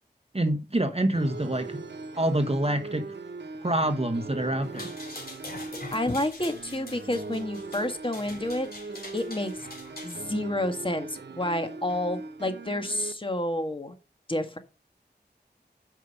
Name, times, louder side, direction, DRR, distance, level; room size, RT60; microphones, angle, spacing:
voice 1, 0.3-1.8 2.2-3.0 3.6-4.9, right 1 dB, 35° right, 1.2 m, -26 dB
sound 1, 1.1-13.1, right 3 dB, 85° right, 0.8 m, -40 dB
Dog walks, 4.6-10.2, left 2 dB, 60° left, 3.1 m, -43 dB
voice 2, 5.9-8.7 9.1-9.7 10.0-13.9 14.3-14.6, left 1 dB, 30° left, 1.6 m, -29 dB
9.0 x 5.5 x 5.2 m
wide cardioid pair, 55°, 18 cm